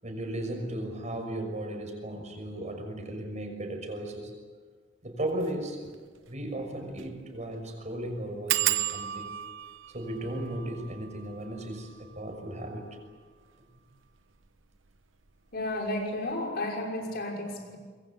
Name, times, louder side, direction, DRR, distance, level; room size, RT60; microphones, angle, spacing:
voice 1, 0.0-4.3 5.0-5.9 6.3-9.3 9.9-12.9, right 1 dB, 35° right, 4 dB, 6.1 m, -36 dB
sound 1, 5.3-5.5 5.9-6.0 6.3-6.4 6.9-7.2 7.4-7.5 8.5-13.8 14.4-15.0 15.3-15.6 15.9-16.0, right 13 dB, 75° right, 1.0 m, -34 dB
voice 2, 15.5-17.8, left 1 dB, 55° left, 1 dB, 5.8 m, -32 dB
25.5 x 22.5 x 8.5 m, 1.5 s
head